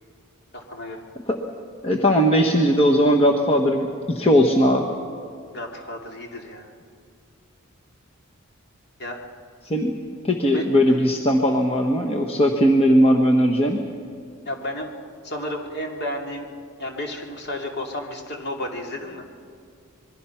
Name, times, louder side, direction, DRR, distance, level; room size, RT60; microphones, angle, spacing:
voice 1, 0.5-1.0 5.5-6.7 9.0-9.2 10.5-10.7 14.5-14.9 15.2-16.5 16.8-19.2, left 1 dB, 50° left, 2 dB, 2.6 m, -32 dB
voice 2, 1.8-4.9 9.6-10.0 10.2-13.8, equal, 25° left, 1 dB, 1.2 m, -19 dB
26.5 x 21.5 x 5.8 m, 2.3 s
head